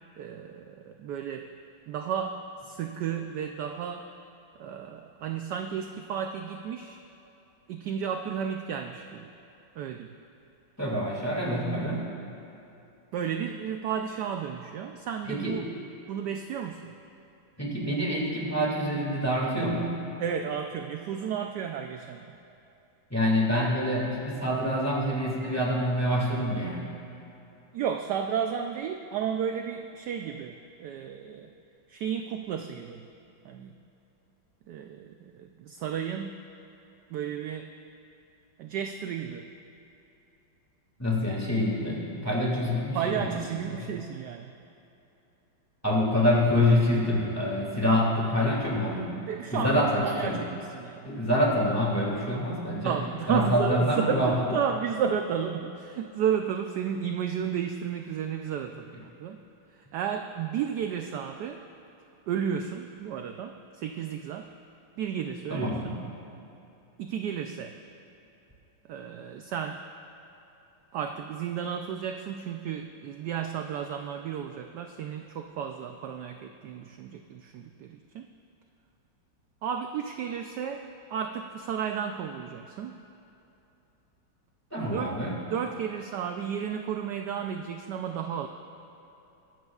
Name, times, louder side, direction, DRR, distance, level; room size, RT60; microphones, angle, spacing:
voice 1, 0.2-1.5 1.9-4.1 4.6-7.0 7.7-9.3 9.8-10.2 13.1-15.6 16.1-16.9 20.2-22.3 27.7-31.5 31.9-33.1 33.4-33.7 34.7-36.4 37.1-37.7 38.6-39.5 42.9-44.5 49.2-51.1 52.8-59.4 59.7-61.6 62.3-64.5 65.0-66.0 67.0-67.8 68.8-69.8 70.9-78.3 79.6-83.0 84.8-85.1 85.5-88.5, right 8 dB, 75° right, 5 dB, 1.0 m, -33 dB
voice 2, 10.8-12.1 15.3-15.6 17.6-20.0 23.1-26.8 41.0-43.9 45.8-49.2 49.5-50.4 51.0-53.0 53.3-54.4 65.5-66.0 84.7-85.3, left 1 dB, 10° left, -4 dB, 2.1 m, -26 dB
22.5 x 12.5 x 2.4 m, 2.9 s
omnidirectional pair, 2.2 m